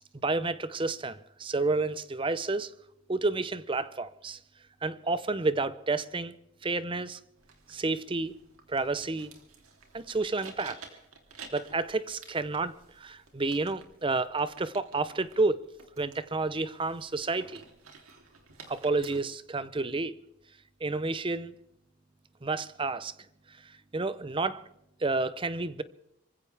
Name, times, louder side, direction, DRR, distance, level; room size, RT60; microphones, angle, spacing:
voice 1, 0.1-2.7 3.1-4.4 4.8-6.3 6.6-7.2 7.7-8.3 8.7-9.3 9.9-10.8 11.5-15.6 16.0-17.7 18.7-20.2 20.8-21.5 22.4-23.1 23.6-24.6 25.0-25.8, right 3 dB, 25° right, 0.6 m, -30 dB
sound 1, 7.4-19.2, right 4 dB, 85° right, 3.1 m, -52 dB
26.0 x 15.5 x 3.4 m
head